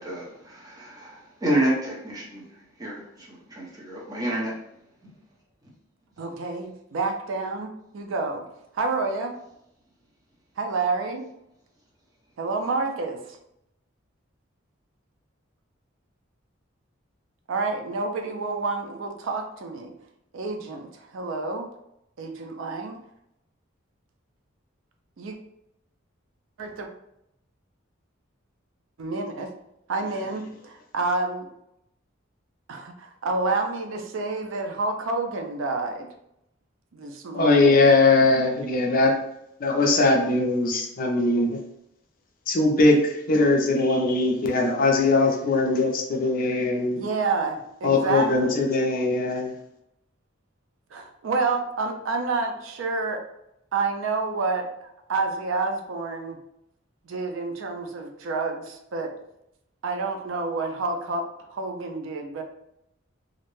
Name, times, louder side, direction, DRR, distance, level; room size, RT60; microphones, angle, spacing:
voice 1, 0.0-4.6, right 1 dB, 20° right, -5 dB, 0.7 m, -29 dB
voice 2, 6.2-8.5 8.7-9.4 10.6-11.3 12.4-13.4 17.5-19.9 20.3-21.7 22.2-23.0 25.2-25.3 26.6-26.9 29.0-29.5 29.9-31.5 32.7-36.1 36.9-37.8 46.9-48.6 50.9-53.2 53.7-56.4 57.0-59.1 59.8-62.4, right 3 dB, 70° right, 4 dB, 0.4 m, -29 dB
voice 3, 37.3-39.1 39.6-41.6 42.5-47.0 47.8-49.5, left 3 dB, 45° left, 2 dB, 0.4 m, -21 dB
2.5 x 2.1 x 3.0 m, 0.80 s
head